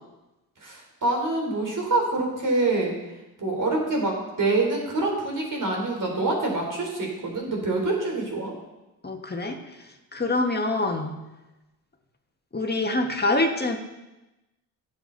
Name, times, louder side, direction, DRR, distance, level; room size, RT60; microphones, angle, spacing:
voice 1, 0.6-2.9 3.4-8.5, right 2 dB, 50° right, 0 dB, 4.0 m, -26 dB
voice 2, 9.0-9.6 10.1-11.1 12.5-13.8, left 2 dB, 25° left, 3 dB, 1.8 m, -25 dB
16.0 x 7.4 x 4.1 m, 1.0 s
cardioid pair, 80°, 40 cm